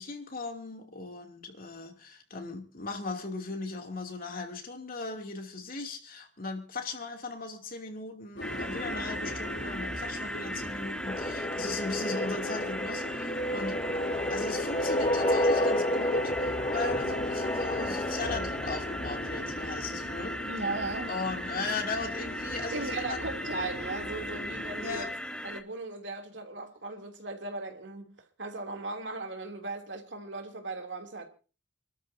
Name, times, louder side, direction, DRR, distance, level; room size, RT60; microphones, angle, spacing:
voice 1, 0.0-13.8 14.3-20.4 21.1-23.2 24.8-25.1, left 3 dB, 50° left, 2.8 m, -38 dB
sound 1, 8.4-25.1, left 1 dB, 80° left, 7.0 m, -41 dB
sound 2, 8.4-25.6, equal, 5° left, 1.0 m, -38 dB
sound 3, 11.1-19.7, left 1 dB, 25° left, 1.0 m, -31 dB
voice 2, 20.5-21.1 22.7-25.1 25.4-31.3, right 3 dB, 80° right, 3.0 m, -37 dB
28.5 x 13.0 x 2.8 m
head